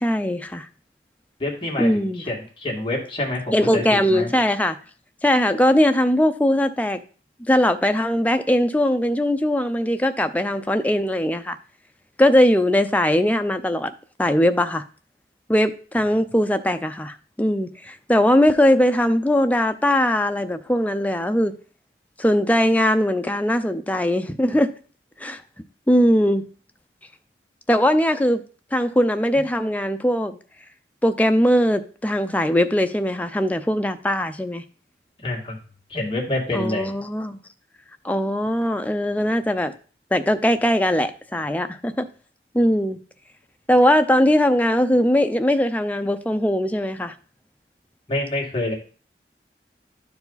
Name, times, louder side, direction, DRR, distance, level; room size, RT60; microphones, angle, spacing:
voice 1, 0.0-0.7 1.8-2.2 3.5-4.8 5.2-7.0 7.5-11.6 12.2-13.9 14.2-14.8 15.5-21.5 22.2-24.7 25.2-25.4 25.9-26.4 27.7-28.4 28.7-30.3 31.0-34.6 36.5-37.4 38.0-39.7 40.1-42.1 42.5-43.0 43.7-47.1, equal, 10° left, 0.5 m, -20 dB
voice 2, 1.4-4.3 29.3-29.4 35.2-35.6 35.9-36.9 48.1-48.7, left 2 dB, 30° left, 2.1 m, -27 dB
11.5 x 4.8 x 4.0 m
head